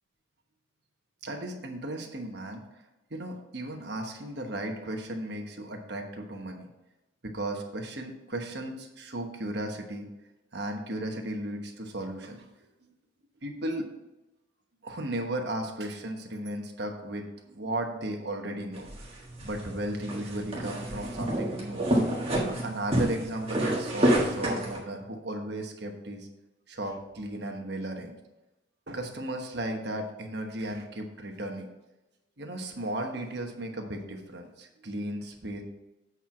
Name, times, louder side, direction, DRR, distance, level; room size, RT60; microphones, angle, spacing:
voice 1, 1.2-2.6 3.1-6.7 7.2-10.1 10.5-12.5 13.4-13.9 14.8-18.9 19.4-21.8 22.3-26.3 26.7-28.2 28.9-31.7 32.4-35.6, right 1 dB, 55° right, 3 dB, 1.2 m, -35 dB
sound 1, 18.7-24.8, right 1 dB, 30° right, 1.6 m, -29 dB
8.2 x 4.6 x 5.8 m, 0.99 s
head